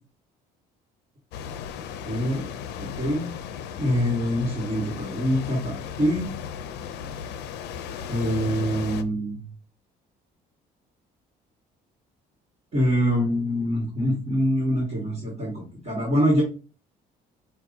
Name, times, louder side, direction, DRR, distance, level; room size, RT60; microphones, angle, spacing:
sound 1, 1.3-9.0, left 7 dB, 80° left, 0.5 m, -36 dB
voice 1, 2.1-2.4 2.8-3.3 3.8-6.3 8.1-9.5 12.7-16.4, equal, 40° right, -3 dB, 1.7 m, -25 dB
5.7 x 2.4 x 2.7 m, 0.34 s
cardioid pair, 110°, 17 cm